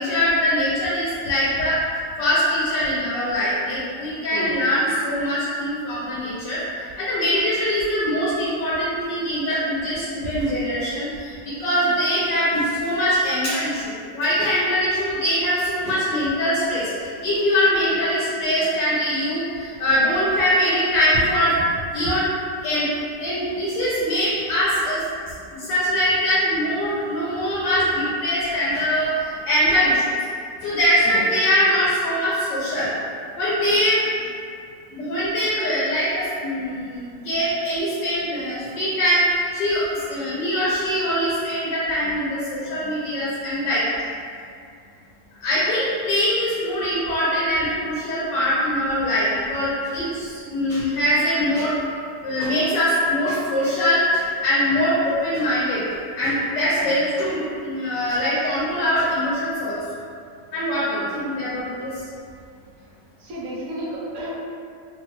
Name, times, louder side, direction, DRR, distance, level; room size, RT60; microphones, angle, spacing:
voice 1, 0.0-1.8 2.2-6.6 7.0-21.5 21.9-22.3 22.6-22.9 23.2-25.0 25.5-30.2 30.6-32.9 33.4-34.0 34.9-43.8 45.4-51.8 52.2-55.8 56.1-59.8 60.5-61.9, equal, 85° left, -8 dB, 1.3 m, -22 dB
voice 2, 63.2-64.3, right 1 dB, 65° right, -6 dB, 0.9 m, -34 dB
2.9 x 2.2 x 2.9 m, 2.3 s
omnidirectional pair, 1.9 m